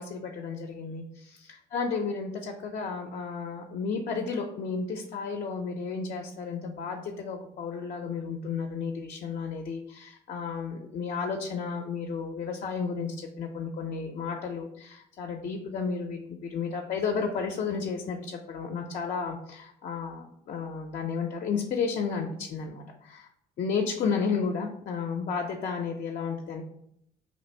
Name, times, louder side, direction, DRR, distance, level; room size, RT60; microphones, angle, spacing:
voice 1, 0.0-1.0 1.7-22.8 23.1-23.2 23.6-26.6, left 5 dB, 50° left, 2 dB, 0.5 m, -32 dB
2.9 x 2.5 x 4.2 m, 0.74 s
cardioid pair, 110°, 17 cm